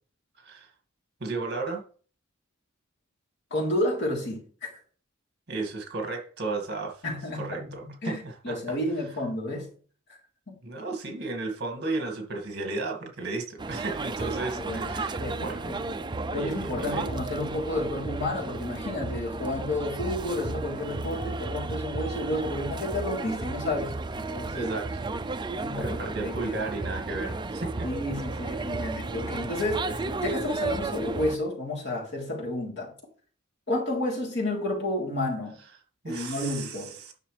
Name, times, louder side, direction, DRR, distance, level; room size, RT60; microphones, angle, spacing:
voice 1, 0.3-0.7 1.2-1.8 5.5-7.0 7.3-8.8 10.6-15.7 16.3-17.1 24.5-25.1 25.8-27.9 36.0-37.1, right 3 dB, 55° right, 2.2 m, -34 dB
voice 2, 3.5-4.8 7.0-7.6 8.0-9.7 10.5-10.6 14.6-15.8 16.3-24.7 25.6-26.5 27.8-32.9 33.7-35.6 36.1-36.9, left 1 dB, 55° left, 3.6 m, -31 dB
sound 1, 13.6-31.4, right 3 dB, 20° right, 0.4 m, -33 dB
10.0 x 6.6 x 3.4 m
head